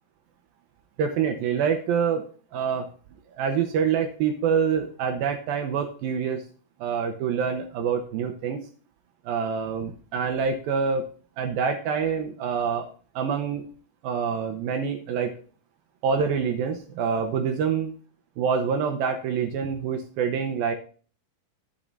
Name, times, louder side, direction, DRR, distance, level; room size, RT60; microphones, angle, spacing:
voice 1, 1.0-2.9 3.3-6.4 6.8-8.6 9.3-11.0 11.4-12.9 13.2-13.6 14.0-15.3 16.0-17.9 18.4-20.7, right 6 dB, 75° right, 5 dB, 2.4 m, -26 dB
12.0 x 8.6 x 2.6 m, 0.41 s
omnidirectional pair, 4.7 m